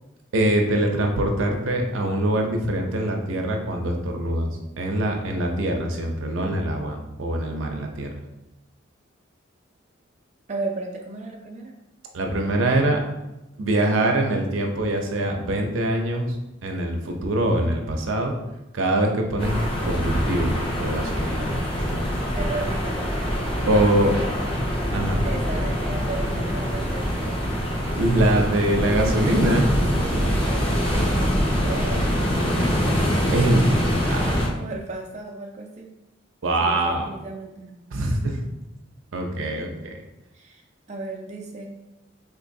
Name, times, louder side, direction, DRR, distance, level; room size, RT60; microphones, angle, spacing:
voice 1, 0.3-4.5 4.8-8.1 12.1-13.0 13.6-16.3 16.6-18.4 18.7-19.5 19.8-21.5 21.9-22.0 23.6-24.1 24.9-25.3 28.0-29.7 33.3-34.2 36.4-37.1 37.9-38.4 39.1-39.9, right 1 dB, 85° right, 2 dB, 0.6 m, -23 dB
voice 2, 10.5-11.7 21.1-22.0 22.3-24.4 25.2-27.6 29.8-31.2 31.6-33.0 33.9-35.9 36.6-37.7 38.1-38.2 40.3-41.7, right 3 dB, 35° right, -1 dB, 0.4 m, -36 dB
sound 1, 19.4-34.5, equal, 25° left, 0.8 m, -24 dB
3.8 x 3.0 x 2.6 m, 0.95 s
head